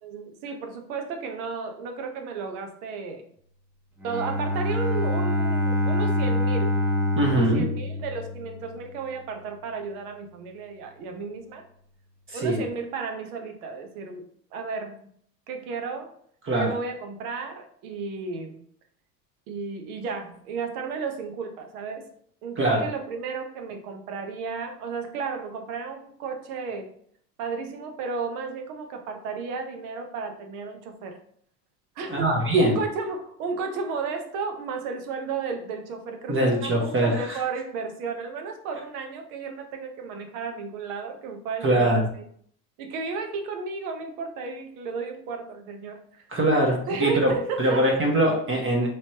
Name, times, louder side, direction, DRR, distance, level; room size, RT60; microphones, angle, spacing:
voice 1, 0.0-3.3 4.0-6.8 7.2-11.6 12.3-14.2 14.5-15.1 15.5-16.1 16.6-18.6 19.5-22.1 22.4-26.9 27.4-31.2 32.0-42.2 42.8-46.3 46.7-47.8, right 4 dB, 60° right, 5 dB, 1.0 m, -33 dB
Bowed string instrument, 4.0-8.8, left 2 dB, 5° right, 0.8 m, -26 dB
voice 2, 7.2-7.7 12.3-12.6 16.4-16.8 22.6-22.9 32.1-32.8 36.3-37.4 41.6-42.1 46.3-48.9, right 1 dB, 25° right, 0 dB, 1.1 m, -22 dB
4.1 x 3.2 x 2.9 m, 0.63 s
hypercardioid pair, 80°, 49 cm